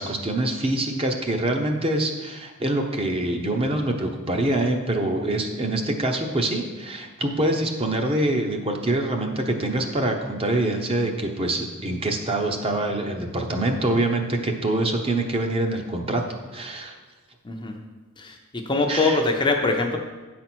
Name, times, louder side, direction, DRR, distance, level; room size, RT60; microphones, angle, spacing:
voice 1, 0.0-17.0 18.9-19.2, right 1 dB, 25° right, 3 dB, 0.8 m, -25 dB
voice 2, 18.7-20.0, left 3 dB, 20° left, 2 dB, 0.6 m, -22 dB
9.4 x 4.3 x 6.1 m, 1.2 s
head